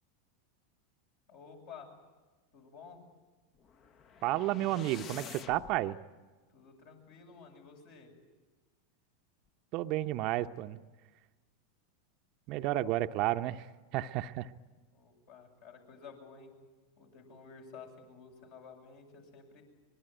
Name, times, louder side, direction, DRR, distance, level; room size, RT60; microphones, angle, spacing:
voice 1, 1.3-2.0 2.5-3.0 6.5-8.2 14.9-16.5 17.0-19.6, left 5 dB, 60° left, 2 dB, 7.6 m, -52 dB
sound 1, 3.6-5.8, left 7 dB, 40° left, 1.3 m, -48 dB
voice 2, 4.2-6.0 9.7-10.8 12.5-13.7 13.9-14.5, right 15 dB, 50° right, 9 dB, 0.9 m, -32 dB
25.0 x 21.5 x 9.1 m, 1.3 s
hypercardioid pair, 90°, 0 cm